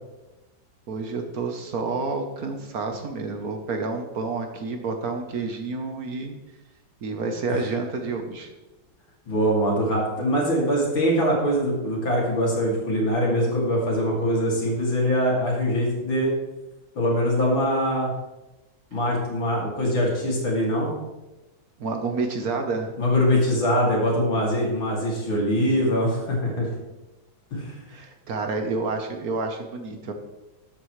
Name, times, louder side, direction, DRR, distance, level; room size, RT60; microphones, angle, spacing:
voice 1, 0.9-6.3 7.0-8.5 21.8-22.9 27.9-30.1, right 3 dB, 55° right, 5 dB, 1.2 m, -29 dB
voice 2, 9.3-16.3 16.9-18.1 18.9-20.9 23.0-26.7 27.5-27.7, equal, 75° left, -3 dB, 3.4 m, -23 dB
12.0 x 8.2 x 3.2 m, 1.1 s
omnidirectional pair, 2.2 m